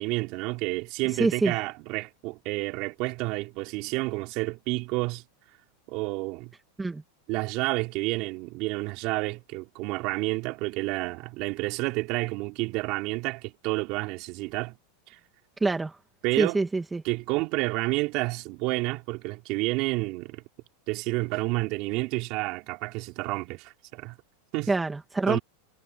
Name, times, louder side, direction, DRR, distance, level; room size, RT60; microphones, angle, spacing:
voice 1, 0.0-5.2 5.9-6.5 7.3-14.8 15.1-15.2 16.2-16.6 17.0-20.4 20.9-24.2 24.5-24.7 25.3-25.4, right 23 dB, 50° right, 4.2 m, -30 dB
voice 2, 1.2-1.5 6.8-7.0 15.6-15.9 16.4-17.0 24.7-25.4, right 3 dB, 10° right, 1.9 m, -25 dB
supercardioid pair, 135°, 0 cm